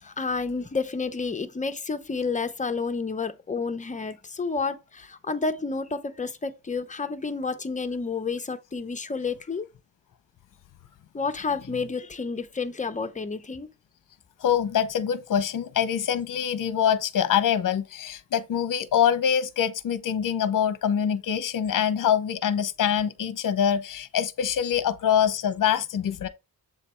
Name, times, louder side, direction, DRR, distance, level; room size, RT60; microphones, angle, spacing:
voice 1, 0.0-9.7 11.1-13.7, left 4 dB, 20° left, 0.6 m, -30 dB
voice 2, 14.4-26.3, left 9 dB, 60° left, 0.7 m, -24 dB
7.6 x 3.3 x 4.3 m
wide cardioid pair, 135°, 35 cm